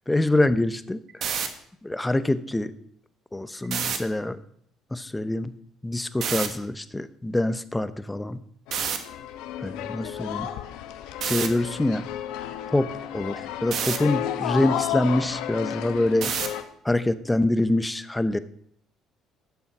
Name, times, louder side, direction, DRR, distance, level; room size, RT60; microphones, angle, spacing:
voice 1, 0.1-1.3 1.8-2.7 3.3-4.4 4.9-5.6 5.8-8.4 9.6-10.5 11.2-12.1 12.7-16.3 16.8-18.4, left 1 dB, 10° left, 13 dB, 0.8 m, -25 dB
sound 1, 1.1-1.5 3.6-4.0 6.2-6.5 8.7-9.0 11.2-11.5 13.7-14.0 16.2-16.6, right 7 dB, 60° right, 1.5 m, -27 dB
sound 2, 8.7-16.6, left 11 dB, 85° left, 1.0 m, -32 dB
12.0 x 7.1 x 6.1 m, 0.66 s
cardioid pair, 90°, 0 cm